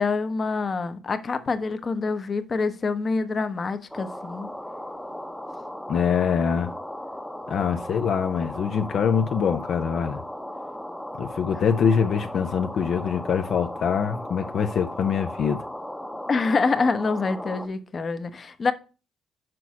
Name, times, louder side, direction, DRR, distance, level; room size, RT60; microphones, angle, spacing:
voice 1, 0.0-4.5 16.3-18.7, left 4 dB, 40° left, 0.9 m, -26 dB
sound 1, 3.9-17.7, left 1 dB, 5° left, 0.8 m, -36 dB
voice 2, 5.9-6.7 7.5-10.2 11.2-15.6, left 7 dB, 65° left, 0.6 m, -24 dB
6.1 x 4.6 x 6.1 m
cardioid pair, 90°, 0 cm